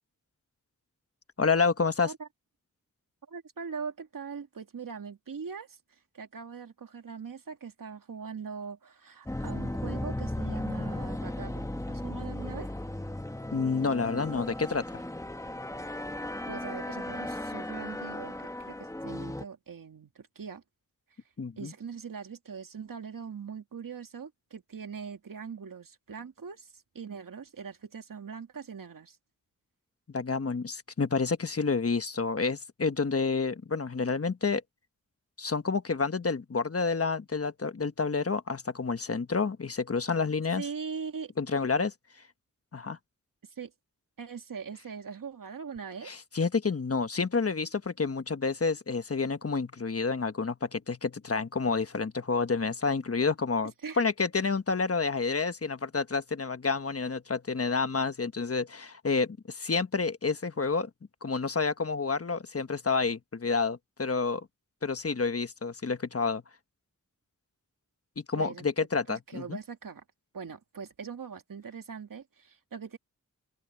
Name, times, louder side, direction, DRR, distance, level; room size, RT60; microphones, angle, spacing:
voice 1, 1.4-2.1 13.5-15.0 21.4-21.7 30.1-34.6 35.4-40.7 41.4-41.9 42.7-43.0 46.0-60.9 61.2-64.5 64.8-66.4 68.3-69.6, left 4 dB, 45° left, 1.3 m, -29 dB
voice 2, 3.3-12.7 16.5-18.3 18.6-20.6 21.6-29.2 40.6-41.3 43.4-43.7 44.2-46.1 53.8-54.0 68.3-68.7 69.1-70.0 70.3-73.0, right 6 dB, 75° right, 2.4 m, -41 dB
sound 1, 9.3-19.4, left 1 dB, 10° left, 1.2 m, -36 dB
open air
cardioid pair, 55°, 33 cm